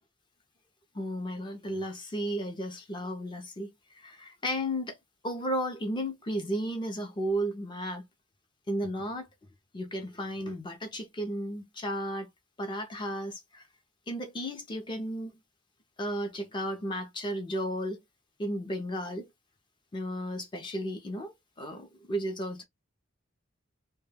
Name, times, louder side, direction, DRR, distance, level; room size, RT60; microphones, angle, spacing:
voice 1, 0.9-5.0 5.2-8.0 8.7-9.3 9.7-12.3 12.6-13.6 14.1-15.3 16.0-18.0 18.4-19.3 19.9-22.6, equal, 25° left, 0.4 m, -34 dB
2.1 x 2.1 x 3.2 m
head